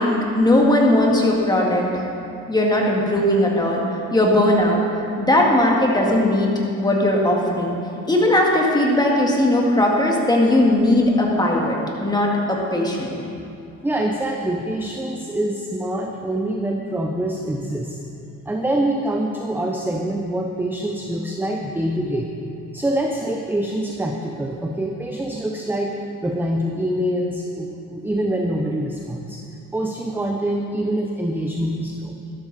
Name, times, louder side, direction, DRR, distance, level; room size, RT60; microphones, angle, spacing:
voice 1, 0.0-2.0 2.5-3.8 4.1-4.8 5.2-7.8 8.1-13.1, left 1 dB, 15° left, -1 dB, 2.0 m, -18 dB
voice 2, 13.8-18.0 18.5-22.3 22.7-26.0 26.2-29.4 29.7-32.2, right 1 dB, 5° right, 2 dB, 0.7 m, -25 dB
13.0 x 12.0 x 4.2 m, 2.7 s
cardioid pair, 110°, 29 cm